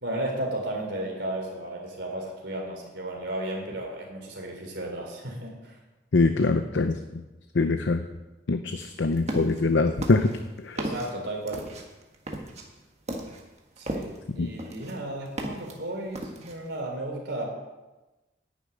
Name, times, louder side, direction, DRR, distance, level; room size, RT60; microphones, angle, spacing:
voice 1, 0.0-5.7 10.7-11.7 13.8-17.5, right 1 dB, 75° right, 0 dB, 3.7 m, -34 dB
voice 2, 6.1-7.2 7.5-8.0 8.5-10.3 10.6-10.8 14.4-14.5, left 3 dB, 80° left, 8 dB, 0.6 m, -23 dB
sound 1, 8.8-9.6 10.0-14.3 14.6-15.8 16.1-16.7, right 1 dB, 35° right, 1.5 m, -35 dB
10.5 x 6.8 x 9.1 m, 1.1 s
head